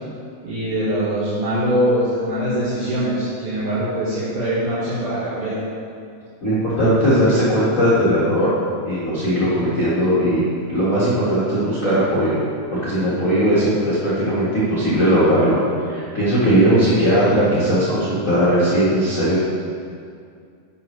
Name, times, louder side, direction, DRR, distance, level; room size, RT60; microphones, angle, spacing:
voice 1, 0.4-5.6, equal, 70° right, -11 dB, 2.9 m, -22 dB
voice 2, 6.4-8.5 8.8-10.4 10.7-12.3 12.7-15.6 15.9-19.4, equal, 45° left, -10 dB, 1.0 m, -18 dB
10.0 x 6.3 x 3.2 m, 2.3 s
omnidirectional pair, 3.9 m